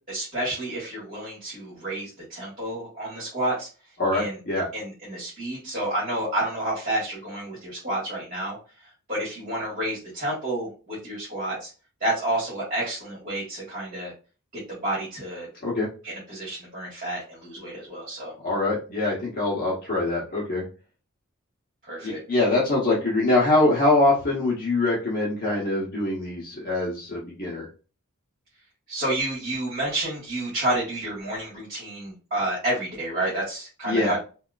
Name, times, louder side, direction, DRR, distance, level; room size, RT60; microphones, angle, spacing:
voice 1, 0.1-3.7 4.1-4.4 4.7-8.6 9.1-11.7 12.0-14.1 14.7-15.5 16.0-18.3 21.8-22.2 28.9-34.2, right 1 dB, 40° right, -7 dB, 1.8 m, -30 dB
voice 2, 4.0-4.7 15.6-15.9 18.4-20.6 22.0-27.7 33.8-34.2, left 2 dB, 45° left, -6 dB, 1.2 m, -23 dB
3.5 x 2.8 x 2.5 m, 0.34 s
head